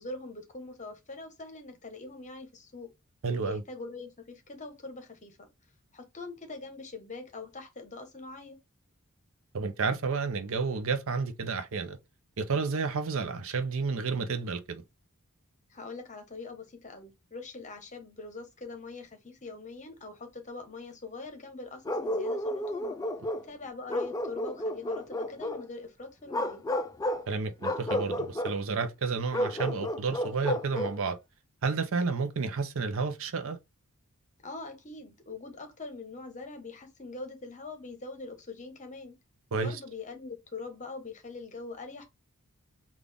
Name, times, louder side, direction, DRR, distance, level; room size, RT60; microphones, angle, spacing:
voice 1, 0.0-2.9 3.3-5.5 5.9-8.6 15.7-23.0 23.4-26.6 34.4-39.1 39.5-42.0, left 3 dB, 35° left, 0.9 m, -43 dB
voice 2, 3.2-3.6 9.5-12.0 12.4-14.8 27.3-31.2 31.6-33.6 39.5-39.8, right 4 dB, 65° right, 0.6 m, -31 dB
Bark, 21.8-23.5 23.9-25.6 26.3-27.3 27.6-28.6 29.3-31.0, left 1 dB, 15° left, 0.4 m, -32 dB
3.8 x 2.4 x 3.4 m
head